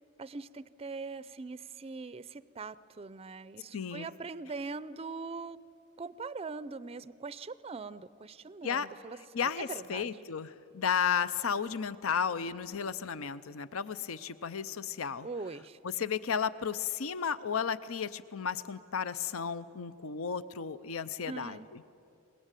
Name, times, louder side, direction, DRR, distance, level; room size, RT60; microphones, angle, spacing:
voice 1, 0.2-5.6 6.0-9.2 9.6-10.1 15.2-15.8 21.3-21.7, right 4 dB, 30° right, 17 dB, 0.5 m, -41 dB
voice 2, 3.7-4.1 8.6-8.9 9.3-15.3 15.8-21.8, left 7 dB, 75° left, 15 dB, 0.6 m, -33 dB
24.0 x 20.5 x 9.0 m, 2.5 s
head